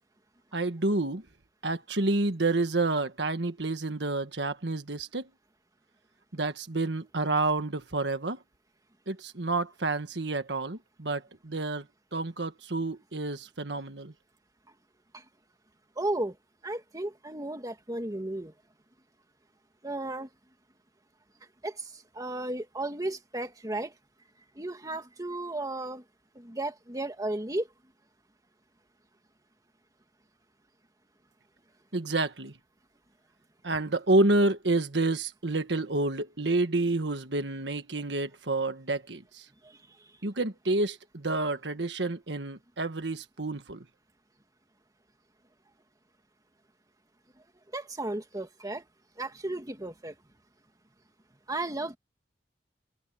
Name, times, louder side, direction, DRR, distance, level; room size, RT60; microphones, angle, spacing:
voice 1, 0.5-1.2 1.6-5.3 6.3-8.4 9.1-11.8 12.1-14.1 31.9-32.5 33.6-39.4 40.2-43.8, right 2 dB, 70° right, 1.6 m, -29 dB
voice 2, 16.0-16.3 16.6-18.5 19.8-20.3 21.6-21.7 22.1-23.9 24.6-26.0 26.4-27.7 47.7-48.8 49.2-50.1 51.5-52.0, right 2 dB, 20° right, 2.1 m, -34 dB
head